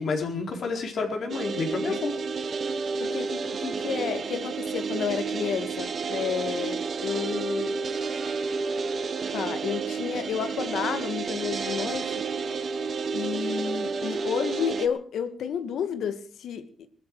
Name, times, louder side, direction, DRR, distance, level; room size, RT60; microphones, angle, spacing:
voice 1, 0.0-2.1, left 4 dB, 60° left, 4.3 m, -29 dB
sound 1, 1.3-14.9, right 5 dB, 45° right, 1.4 m, -30 dB
voice 2, 3.0-7.8 9.3-12.2 13.1-16.9, left 8 dB, 75° left, 1.8 m, -31 dB
21.0 x 13.0 x 4.8 m
cardioid pair, 125°, 0 cm